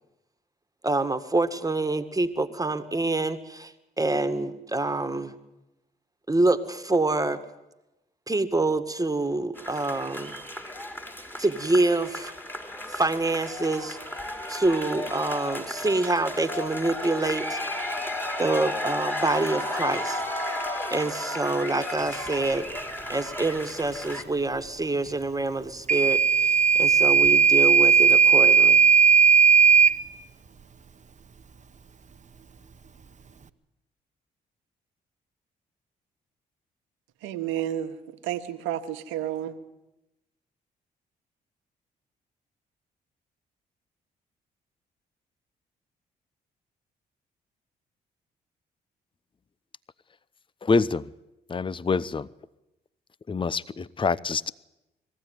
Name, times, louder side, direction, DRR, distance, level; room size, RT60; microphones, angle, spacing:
voice 1, 0.8-5.3 6.3-7.4 8.3-10.4 11.4-12.3 12.9-14.0 14.5-17.6 18.4-20.2 20.9-22.7 23.1-28.8, right 2 dB, 20° right, 1.8 m, -26 dB
sound 1, 9.6-24.2, left 1 dB, 10° left, 3.0 m, -33 dB
Microwave oven / Alarm, 25.9-30.0, right 6 dB, 40° right, 1.1 m, -17 dB
voice 2, 37.2-38.0 38.2-39.6, right 11 dB, 80° right, 1.3 m, -31 dB
voice 3, 50.6-51.0 51.5-52.3 53.3-54.5, left 4 dB, 25° left, 0.7 m, -26 dB
21.0 x 15.0 x 9.5 m
hypercardioid pair, 50°, 20 cm